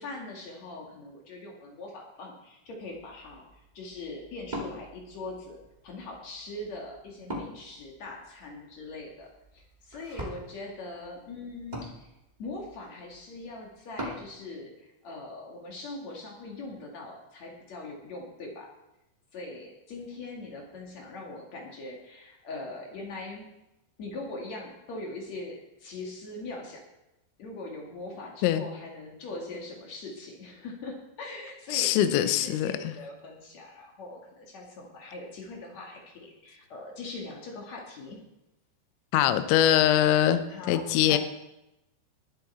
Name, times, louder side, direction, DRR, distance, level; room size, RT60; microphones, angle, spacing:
voice 1, 0.0-5.6 5.8-12.1 12.4-18.7 19.3-23.4 24.0-26.8 27.4-38.2 40.5-41.2, left 2 dB, 55° left, -1 dB, 2.1 m, -41 dB
Wood, 2.8-14.3, equal, 75° right, 0.4 m, -44 dB
voice 2, 31.7-32.9 39.1-40.4 40.7-41.2, left 11 dB, 80° left, 10 dB, 2.9 m, -23 dB
21.5 x 7.5 x 4.3 m, 0.90 s
omnidirectional pair, 5.8 m